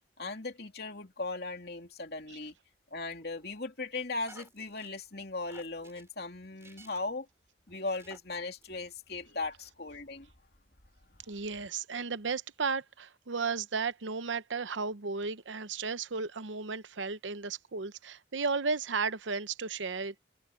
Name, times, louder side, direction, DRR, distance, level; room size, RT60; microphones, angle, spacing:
voice 1, 0.2-2.5 2.9-7.3 7.7-10.3 11.2-11.4, left 3 dB, 60° left, 3.2 m, -38 dB
sound 1, 3.1-3.6 4.2-4.9 5.5-6.1 6.6-7.2 7.7-8.2 8.6-8.7, right 2 dB, 15° right, 3.4 m, -55 dB
voice 2, 11.3-20.1, right 4 dB, 90° right, 0.8 m, -34 dB
head